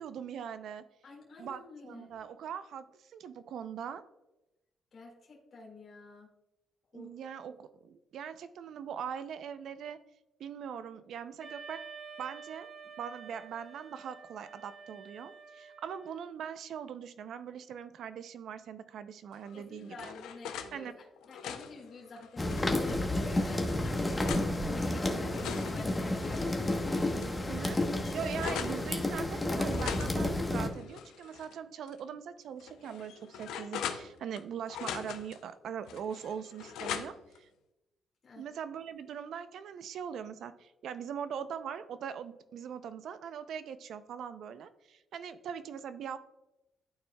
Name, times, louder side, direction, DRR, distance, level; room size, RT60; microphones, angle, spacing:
voice 1, 0.0-0.8 1.4-4.0 6.9-10.0 10.4-11.8 12.2-12.7 13.0-20.1 20.7-20.9 27.5-27.8 28.1-37.5 38.4-46.2, right 8 dB, 70° right, 12 dB, 0.5 m, -41 dB
voice 2, 1.0-2.1 4.9-6.3 6.9-7.1 19.5-27.2 29.8-30.0 38.2-38.5, left 3 dB, 50° left, -3 dB, 1.9 m, -48 dB
Wind instrument woodwind instrument, 11.4-16.3, right 5 dB, 40° right, 1.8 m, -49 dB
sound 1, 19.4-20.7 21.2-22.8 23.4-24.5 25.1-26.8 27.2-27.3 27.6-28.8 29.7-31.5 31.9-32.0 32.6-34.4 34.7-35.4 35.9-37.4, left 8 dB, 85° left, 0.5 m, -41 dB
sound 2, 22.4-30.7, left 1 dB, 20° left, 1.0 m, -31 dB
11.5 x 4.4 x 2.2 m, 0.95 s
cardioid pair, 90°, 0 cm